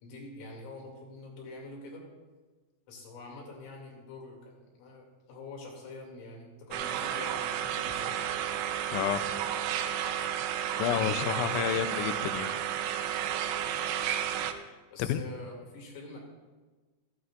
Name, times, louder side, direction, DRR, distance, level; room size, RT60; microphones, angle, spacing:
voice 1, 0.0-2.1 2.9-8.2 14.9-16.2, left 2 dB, 70° left, -1 dB, 4.6 m, -45 dB
sound 1, 6.7-14.5, right 10 dB, 85° right, 2.8 m, -32 dB
voice 2, 8.9-9.3 10.8-12.5 15.0-15.2, left 10 dB, 85° left, 10 dB, 2.6 m, -30 dB
16.5 x 14.5 x 2.5 m, 1.3 s
omnidirectional pair, 6.0 m